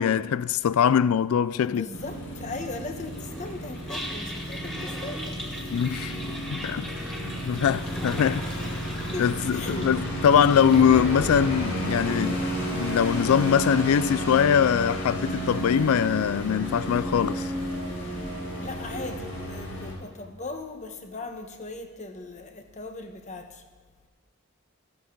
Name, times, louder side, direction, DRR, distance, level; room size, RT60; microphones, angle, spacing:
voice 1, 0.0-1.8 5.7-6.2 6.5-6.9 7.4-8.5 9.2-12.4 12.7-17.5, left 8 dB, 90° left, 0.3 m, -22 dB
voice 2, 1.6-5.4 7.9-8.0 9.1-9.9 18.6-23.6, left 3 dB, 35° left, 1.1 m, -38 dB
sound 1, 1.9-19.9, right 1 dB, 75° left, 4.1 m, -32 dB
Toilet flush, 3.1-18.3, equal, 5° left, 2.2 m, -42 dB
Thunder, 9.6-16.7 17.7-19.5, right 1 dB, 35° right, 1.7 m, -41 dB
13.5 x 13.0 x 3.8 m
head